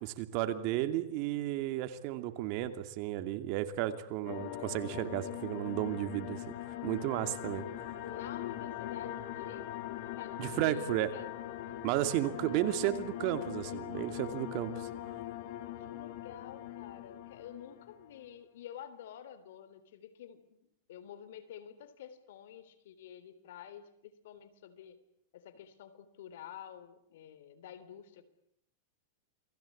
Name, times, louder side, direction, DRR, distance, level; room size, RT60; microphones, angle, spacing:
voice 1, 0.0-6.4 6.8-7.6 10.4-11.1 11.8-14.9, right 14 dB, 45° right, 9 dB, 2.5 m, -33 dB
sound 1, 4.2-18.2, left 12 dB, 55° left, 2.8 m, -42 dB
voice 2, 8.0-9.7 10.2-11.5 15.9-25.0 25.3-28.3, left 10 dB, 75° left, 13 dB, 3.4 m, -50 dB
28.5 x 20.0 x 8.6 m, 0.73 s
supercardioid pair, 150°, 0 cm